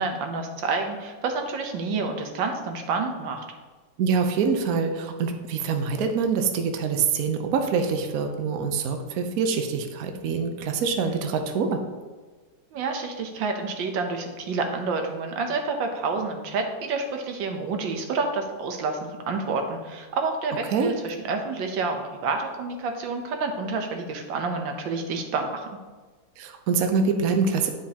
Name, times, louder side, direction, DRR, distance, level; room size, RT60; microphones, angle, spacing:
voice 1, 0.0-3.4 12.7-19.0 19.3-25.8, right 4 dB, 80° right, 4 dB, 1.6 m, -29 dB
voice 2, 4.0-11.8 20.7-20.9 26.4-27.7, right 5 dB, 65° right, 5 dB, 1.0 m, -25 dB
10.5 x 5.1 x 2.8 m, 1.3 s
omnidirectional pair, 2.0 m